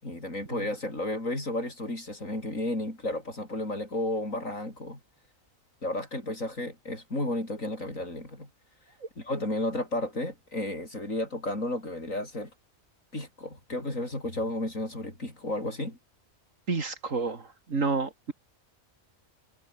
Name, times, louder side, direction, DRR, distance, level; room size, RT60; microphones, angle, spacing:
voice 1, 0.0-5.0 5.8-8.5 9.2-12.5 13.1-16.0, left 1 dB, 75° left, 8.6 m, -33 dB
voice 2, 16.7-18.3, right 4 dB, 70° right, 2.8 m, -30 dB
omnidirectional pair, 1.4 m